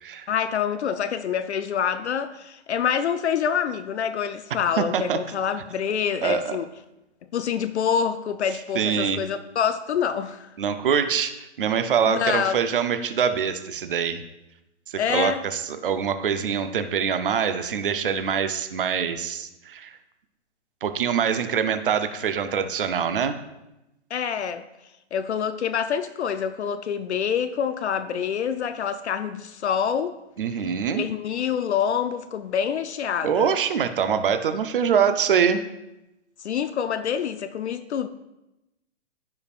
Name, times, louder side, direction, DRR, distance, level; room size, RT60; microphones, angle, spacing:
voice 1, 0.3-6.7 7.3-10.5 12.1-12.5 15.0-15.4 24.1-24.7 25.1-30.1 30.9-33.5 36.4-38.1, left 8 dB, 65° left, 10 dB, 0.5 m, -26 dB
voice 2, 4.8-5.2 6.2-6.6 8.7-9.2 10.6-14.2 14.9-19.9 20.8-23.4 30.4-31.0 33.2-35.6, right 7 dB, 50° right, 9 dB, 0.6 m, -24 dB
14.5 x 5.3 x 2.4 m, 0.95 s
hypercardioid pair, 175°, 36 cm